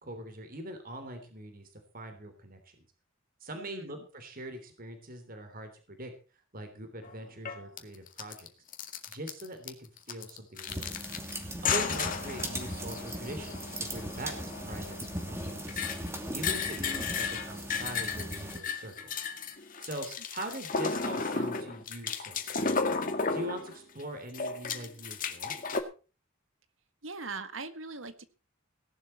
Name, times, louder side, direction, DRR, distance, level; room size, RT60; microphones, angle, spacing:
voice 1, 0.0-2.9 3.4-6.1 6.5-8.5 9.1-11.0 11.6-16.0 16.3-19.3 19.8-22.7 23.3-25.5, right 1 dB, 45° right, 6 dB, 3.3 m, -42 dB
voice 2, 3.5-4.1 11.6-12.1 20.0-20.6 27.0-28.2, right 3 dB, 75° right, 12 dB, 1.7 m, -42 dB
sound 1, 7.0-7.1 7.4-7.8 8.1-8.5 8.7-9.7 10.0-11.4 11.6-24.0 24.3-25.8, left 5 dB, 40° left, 2.1 m, -34 dB
sound 2, 10.7-18.6, right 1 dB, 15° right, 2.6 m, -39 dB
17.5 x 11.5 x 4.3 m, 0.35 s
head